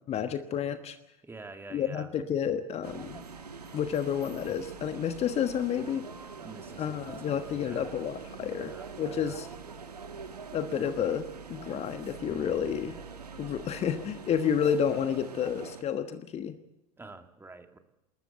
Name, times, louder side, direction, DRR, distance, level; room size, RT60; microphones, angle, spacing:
voice 1, 0.1-1.0 1.7-3.2 3.7-6.0 6.8-8.7 9.0-9.5 10.5-13.0 13.4-16.5, left 8 dB, 30° left, 10 dB, 1.3 m, -30 dB
voice 2, 1.2-2.1 6.4-7.9 8.6-9.4 17.0-17.8, right 3 dB, 10° right, 6 dB, 2.1 m, -48 dB
sound 1, 2.8-15.8, right 5 dB, 80° right, 1.5 m, -44 dB
27.5 x 13.5 x 8.1 m, 0.92 s
figure-of-eight pair, 80°, 20 cm